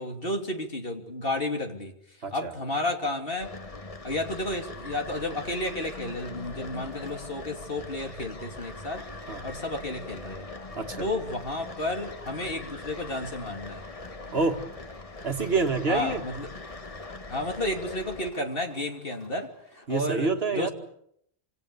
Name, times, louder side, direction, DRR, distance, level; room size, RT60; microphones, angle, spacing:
voice 1, 0.0-3.5 4.0-9.1 9.4-10.5 11.0-13.8 15.9-16.5 17.3-20.7, left 1 dB, 60° left, 3 dB, 3.2 m, -32 dB
sound 1, 3.4-18.3, left 2 dB, 35° left, 1.3 m, -41 dB
Rain, 4.0-19.9, equal, 15° left, 6.5 m, -56 dB
voice 2, 10.8-11.1 14.3-14.7 15.2-16.2 19.9-20.7, right 4 dB, 70° right, 6 dB, 2.1 m, -27 dB
27.0 x 26.5 x 7.0 m, 0.75 s
omnidirectional pair, 1.1 m